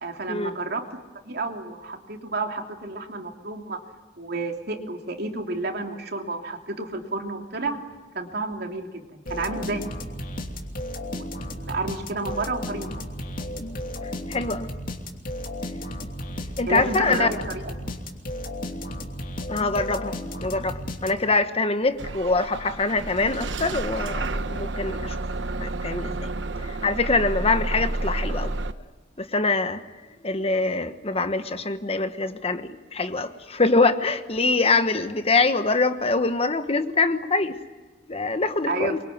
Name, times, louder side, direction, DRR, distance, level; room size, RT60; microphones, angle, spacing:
voice 1, 0.0-3.8 4.2-7.8 8.1-9.8 11.1-11.3 11.6-13.1 16.6-17.7 38.7-38.9, right 3 dB, 60° right, 3.0 m, -31 dB
sound 1, 9.3-21.5, left 1 dB, 50° left, 2.9 m, -34 dB
voice 2, 14.0-14.7 16.6-17.3 19.5-25.2 25.6-26.3 26.6-28.5 29.2-29.8 30.2-37.6 38.1-39.0, left 3 dB, 35° left, 1.3 m, -24 dB
Bus / Engine starting, 22.0-28.7, right 2 dB, 80° right, 1.1 m, -30 dB
25.5 x 23.5 x 9.6 m
head